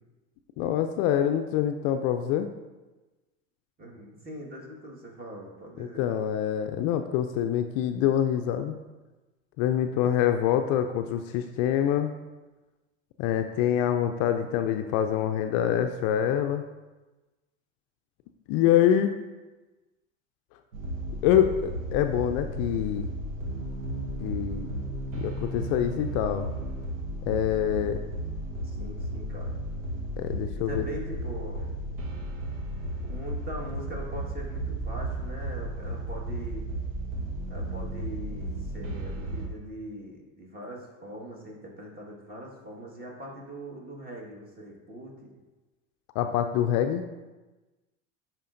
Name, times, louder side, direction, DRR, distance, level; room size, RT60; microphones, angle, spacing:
voice 1, 0.6-2.5 5.8-8.8 9.6-12.1 13.2-16.6 18.5-19.1 21.2-23.0 24.2-24.7 25.1-26.5 27.2-28.0 30.2-30.8 46.2-47.1, left 10 dB, 50° left, 7 dB, 0.5 m, -25 dB
voice 2, 3.8-6.1 28.6-29.6 30.5-31.7 33.0-36.7 37.5-45.3, right 1 dB, 25° right, -1 dB, 1.7 m, -41 dB
sound 1, 20.7-39.5, right 1 dB, 80° right, 1.1 m, -34 dB
10.0 x 4.5 x 2.6 m, 1.2 s
hypercardioid pair, 90°, 39 cm